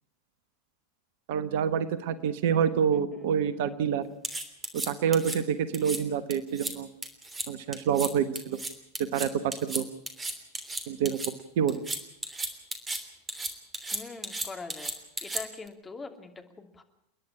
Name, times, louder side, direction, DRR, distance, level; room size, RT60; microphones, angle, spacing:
voice 1, 1.3-4.0 4.7-6.9 7.5-8.6 9.1-9.3 9.6-9.8 10.9-11.2 11.6-11.8, right 8 dB, 55° right, 14 dB, 1.2 m, -27 dB
voice 2, 2.5-3.3 13.9-14.9 15.2-16.8, left 4 dB, 15° left, 5 dB, 2.7 m, -43 dB
sound 1, 4.2-5.4 5.7-6.0 6.3-6.7 7.0-7.5 7.7-8.1 8.3-11.3 11.7-13.0 13.3-15.7, right 2 dB, 15° right, 3.2 m, -34 dB
29.5 x 10.5 x 9.9 m, 0.77 s
figure-of-eight pair, 85°, 0 cm